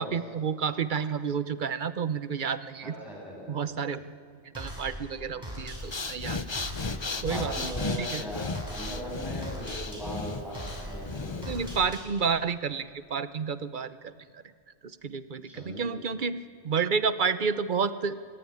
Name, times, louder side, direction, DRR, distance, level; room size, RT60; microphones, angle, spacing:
voice 1, 0.0-2.9 3.5-4.1 4.5-6.4 7.2-7.7 8.0-8.2 11.4-14.4 14.8-18.2, right 6 dB, 45° right, 13 dB, 0.9 m, -30 dB
voice 2, 2.8-3.8 7.2-11.5 15.4-15.8, equal, ahead, -4 dB, 7.8 m, -39 dB
sound 1, 4.5-12.4, equal, 20° right, 5.8 m, -41 dB
Breathing, 5.8-11.8, left 3 dB, 25° left, 0.8 m, -35 dB
26.5 x 20.0 x 9.8 m, 2.1 s
omnidirectional pair, 1.2 m